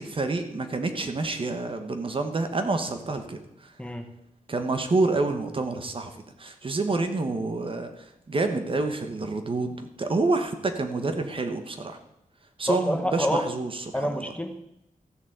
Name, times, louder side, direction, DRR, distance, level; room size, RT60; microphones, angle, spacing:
voice 1, 0.0-3.8 4.5-12.0 12.6-14.3, right 3 dB, 40° right, 7 dB, 1.3 m, -28 dB
voice 2, 3.8-4.1 12.7-13.5 13.9-14.6, left 1 dB, 10° left, 5 dB, 1.1 m, -27 dB
14.0 x 7.3 x 7.9 m, 0.84 s
wide cardioid pair, 180°, 14 cm